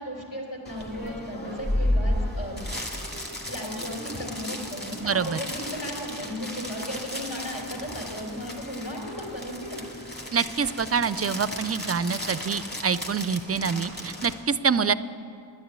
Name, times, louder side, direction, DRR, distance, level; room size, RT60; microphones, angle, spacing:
voice 1, 0.0-2.6 3.5-9.8, equal, 70° left, -3 dB, 3.6 m, -35 dB
sound 1, 0.6-14.3, left 1 dB, 20° left, 2.0 m, -33 dB
voice 2, 5.0-5.4 10.3-14.9, right 6 dB, 35° right, 16 dB, 0.4 m, -26 dB
10.5 x 10.0 x 8.2 m, 2.7 s
wide cardioid pair, 40°, 46 cm